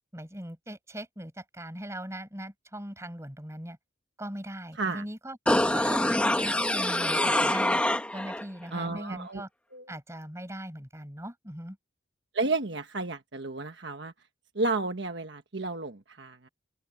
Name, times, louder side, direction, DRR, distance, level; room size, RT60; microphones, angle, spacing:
voice 1, 0.1-3.8 4.2-5.4 5.7-7.8 8.1-9.5 9.9-11.8, right 1 dB, 15° right, 6.3 m, -40 dB
sound 1, 5.5-8.4 8.8-8.9, left 1 dB, 5° left, 1.3 m, -25 dB
voice 2, 8.7-9.4 9.7-9.8 12.3-14.1 14.5-16.5, right 3 dB, 65° right, 1.3 m, -32 dB
open air
head